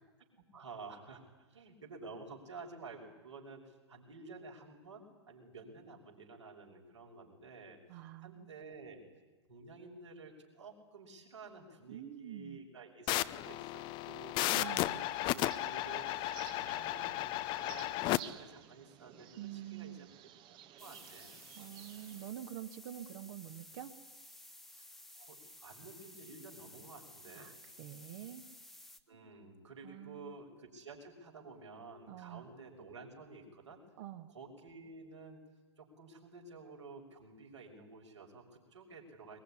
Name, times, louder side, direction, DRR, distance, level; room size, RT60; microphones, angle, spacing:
voice 1, 0.5-1.2 1.5-7.8 8.2-9.0 9.5-21.3 24.7-24.9 25.2-27.5 29.1-33.8 34.3-35.4 35.8-39.4, right 3 dB, 75° right, 1 dB, 6.0 m, -52 dB
voice 2, 7.9-8.5 11.9-12.6 14.5-15.0 19.4-20.1 21.6-23.9 27.4-27.5 27.8-28.4 29.8-30.3 32.1-32.5 34.0-34.3, right 12 dB, 45° right, 7 dB, 1.8 m, -46 dB
sound 1, 13.1-18.2, left 16 dB, 30° left, 0.8 m, -34 dB
sound 2, 14.9-22.3, right 11 dB, 30° right, 1.3 m, -55 dB
sound 3, 20.8-29.0, left 1 dB, ahead, 1.3 m, -55 dB
23.0 x 21.5 x 10.0 m, 1.2 s
figure-of-eight pair, 110°, 15 cm